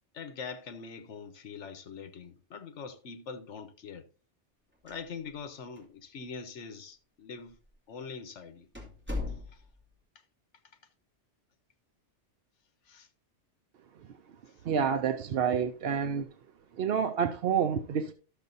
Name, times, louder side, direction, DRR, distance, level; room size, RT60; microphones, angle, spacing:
voice 1, 0.1-4.0 4.8-7.5 7.9-8.7 12.9-13.1, left 5 dB, 75° left, 1.2 m, -43 dB
sound 1, 4.7-5.5 5.8-5.9 6.6-6.7 7.5-7.7 8.1-8.2 8.7-9.9, left 2 dB, 10° right, 2.0 m, -38 dB
voice 2, 14.6-16.3 16.8-18.1, right 7 dB, 60° right, 0.8 m, -28 dB
12.5 x 6.7 x 2.6 m
omnidirectional pair, 1.2 m